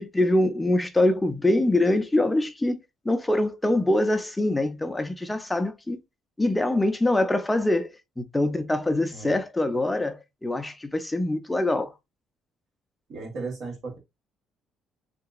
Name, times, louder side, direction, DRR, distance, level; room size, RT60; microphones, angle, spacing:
voice 1, 0.0-2.8 3.0-6.0 6.4-11.9, left 1 dB, 10° left, 0.5 m, -24 dB
voice 2, 13.1-14.0, right 4 dB, 60° right, 1.6 m, -35 dB
3.7 x 2.8 x 2.4 m
cardioid pair, 135°, 0 cm